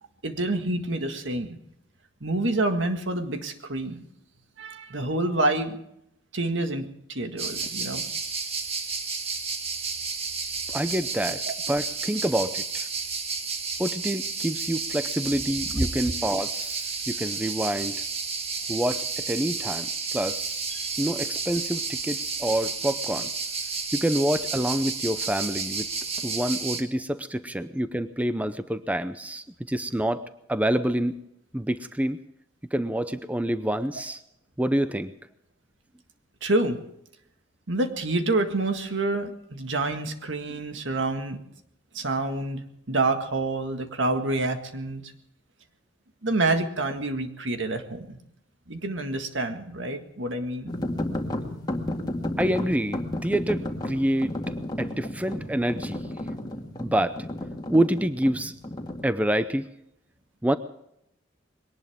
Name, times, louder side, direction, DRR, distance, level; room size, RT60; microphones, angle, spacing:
voice 1, 0.2-1.6 2.2-4.0 4.6-5.8 6.3-8.0 11.5-11.6 15.8-15.9 20.7-20.9 36.4-36.8 37.7-41.4 41.9-45.0 46.2-48.2 48.7-50.7, right 2 dB, 70° right, 6 dB, 1.9 m, -27 dB
sound 1, 7.4-26.8, right 4 dB, 35° right, 1.6 m, -31 dB
voice 2, 10.7-11.4 11.7-12.9 13.8-18.0 18.7-20.7 21.0-23.3 23.9-25.9 26.2-30.2 30.5-31.1 31.5-32.2 32.7-34.2 34.6-35.1 40.5-40.6 52.4-54.3 54.8-56.0 56.8-57.3 57.7-58.5 59.0-59.7 60.4-60.6, right 1 dB, 10° right, 11 dB, 0.6 m, -27 dB
sound 2, 50.7-59.1, left 1 dB, 20° left, 1.9 m, -32 dB
21.5 x 18.5 x 3.6 m, 0.78 s
head